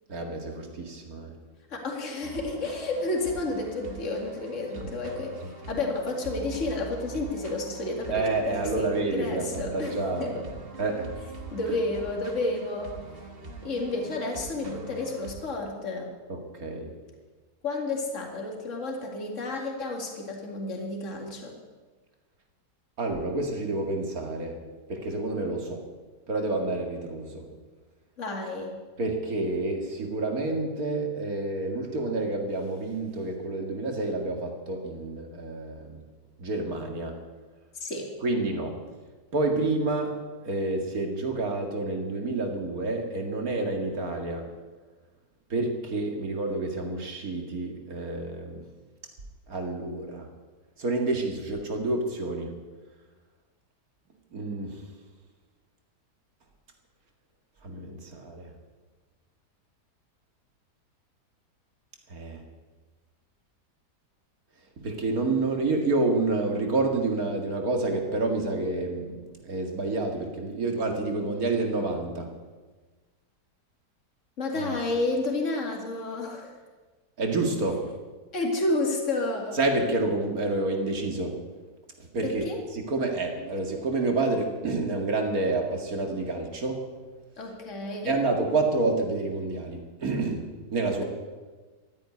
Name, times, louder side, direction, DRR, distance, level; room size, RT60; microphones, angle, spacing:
voice 1, 0.1-1.3 4.8-4.9 5.4-5.5 8.1-10.4 10.8-11.1 16.3-16.9 23.0-24.6 24.9-25.8 26.3-27.5 29.0-36.0 36.4-37.2 38.2-38.8 39.3-44.5 45.5-48.6 49.5-50.3 50.8-52.5 54.3-54.8 57.6-58.5 62.1-62.4 64.8-72.3 74.7-74.8 77.2-77.9 79.5-81.4 82.0-82.5 82.7-86.9 88.0-91.0, right 2 dB, 60° right, 3 dB, 2.5 m, -29 dB
voice 2, 1.7-5.3 5.7-10.4 11.5-12.9 13.6-16.1 17.6-21.5 28.2-28.7 37.8-38.1 74.4-76.5 78.3-79.6 82.2-82.6 87.4-88.2 91.0-91.1, left 2 dB, 45° left, 1 dB, 2.6 m, -31 dB
sound 1, 2.2-15.4, right 3 dB, 35° right, 1.7 m, -43 dB
13.5 x 9.5 x 9.7 m, 1.3 s
omnidirectional pair, 1.8 m